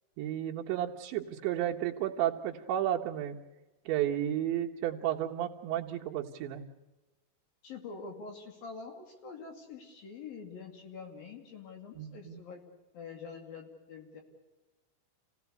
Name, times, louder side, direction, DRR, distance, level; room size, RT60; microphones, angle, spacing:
voice 1, 0.2-3.4 3.9-6.6 12.0-12.4, right 11 dB, 70° right, 0 dB, 3.4 m, -32 dB
voice 2, 7.6-12.6 12.9-14.2, left 5 dB, 50° left, 4 dB, 4.0 m, -45 dB
28.5 x 17.0 x 8.3 m, 1.1 s
omnidirectional pair, 5.7 m